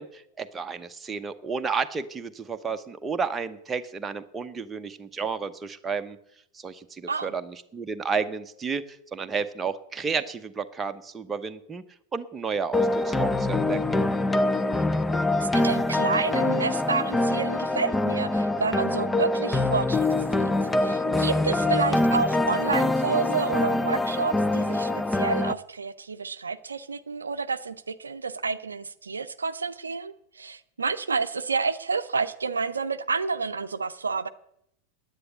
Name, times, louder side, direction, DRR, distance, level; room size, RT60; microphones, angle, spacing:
voice 1, 0.0-6.2 6.5-11.8 12.1-14.0, right 5 dB, 15° right, 8 dB, 0.9 m, -32 dB
sound 1, 12.7-25.5, left 2 dB, 10° left, 0.6 m, -24 dB
voice 2, 15.4-20.5 20.8-34.3, right 5 dB, 75° right, 11 dB, 0.6 m, -29 dB
9.8 x 9.0 x 9.5 m, 0.74 s
figure-of-eight pair, 90°, 0 cm